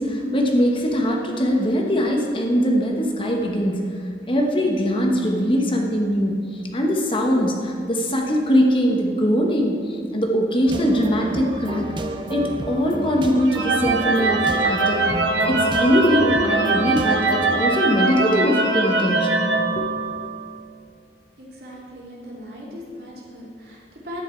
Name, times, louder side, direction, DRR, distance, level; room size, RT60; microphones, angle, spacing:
voice 1, 0.0-11.9 12.3-15.1 15.5-19.5 19.7-19.9, equal, 30° left, 0 dB, 1.1 m, -21 dB
sound 1, 10.7-17.6, right 1 dB, 25° right, 0.6 m, -30 dB
sound 2, 13.5-20.5, right 2 dB, 80° right, 1.0 m, -22 dB
voice 2, 21.4-24.2, equal, 60° right, -4 dB, 2.6 m, -39 dB
11.0 x 9.1 x 4.4 m, 2.3 s
head